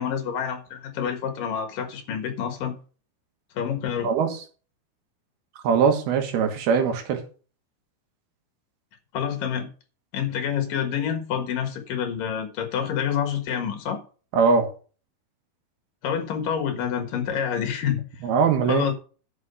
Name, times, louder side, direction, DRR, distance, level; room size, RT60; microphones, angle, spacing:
voice 1, 0.0-2.8 3.5-4.1 9.1-9.7 10.1-14.0 16.0-18.0 18.7-18.9, left 8 dB, 65° left, 3.0 m, -27 dB
voice 2, 4.0-4.4 5.6-7.2 14.3-14.7 18.2-18.9, right 5 dB, 85° right, 3.5 m, -21 dB
11.0 x 6.2 x 5.6 m
omnidirectional pair, 4.4 m